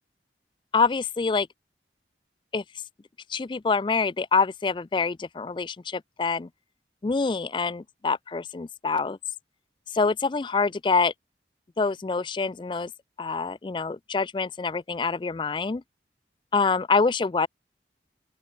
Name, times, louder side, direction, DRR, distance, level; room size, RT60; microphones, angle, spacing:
voice 1, 0.7-1.5 2.5-2.6 3.3-6.5 7.0-9.2 9.9-11.1 11.8-12.9 13.2-15.8 16.5-17.5, left 4 dB, 25° left, 0.3 m, -26 dB
open air
head